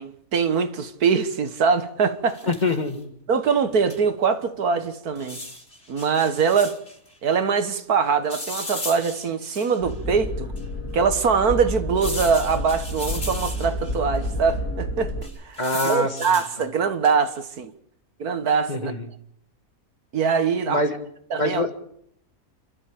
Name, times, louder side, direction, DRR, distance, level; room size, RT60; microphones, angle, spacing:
voice 1, 0.0-2.4 3.3-5.4 5.9-6.8 7.2-10.5 10.9-15.1 15.5-17.7 18.2-18.9 20.1-20.8 21.3-21.7, right 6 dB, 75° right, 2.0 m, -23 dB
sound 1, 2.3-2.9 3.9-4.0 4.2-4.3 5.2-7.0 8.3-9.9 10.6-10.7 12.0-13.9 15.2-16.5 17.0-17.4, left 2 dB, 45° left, 4.0 m, -36 dB
voice 2, 2.5-3.1 15.6-16.4 18.7-19.1 20.7-21.0 21.3-21.7, left 2 dB, 30° left, 1.9 m, -25 dB
sound 2, 9.8-15.2, left 1 dB, 85° left, 4.5 m, -30 dB
28.5 x 13.5 x 8.7 m
omnidirectional pair, 1.6 m